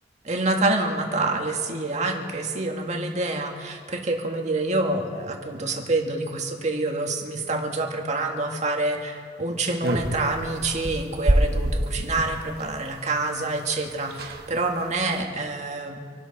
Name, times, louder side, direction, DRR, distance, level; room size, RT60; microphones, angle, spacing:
voice 1, 0.2-16.0, right 2 dB, 40° right, 2 dB, 1.8 m, -27 dB
sound 1, 9.8-12.4 13.6-13.7 13.8-13.9 14.1-14.5 14.9-15.2, right 1 dB, 65° right, 1.2 m, -25 dB
27.0 x 12.0 x 4.2 m, 2.1 s
head